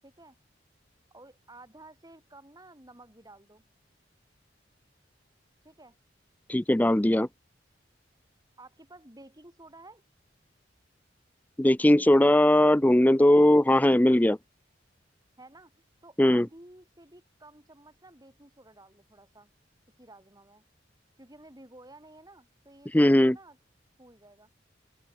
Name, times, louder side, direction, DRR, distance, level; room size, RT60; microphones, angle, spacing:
voice 1, 0.0-0.4 1.1-3.6 5.6-6.0 8.6-10.0 15.4-15.7 16.0-19.5 20.0-20.6 21.2-23.6 24.0-24.5, right 2 dB, 20° right, 7.8 m, -52 dB
voice 2, 6.5-7.3 11.6-14.4 16.2-16.5 22.9-23.4, left 1 dB, 10° left, 0.5 m, -20 dB
open air
head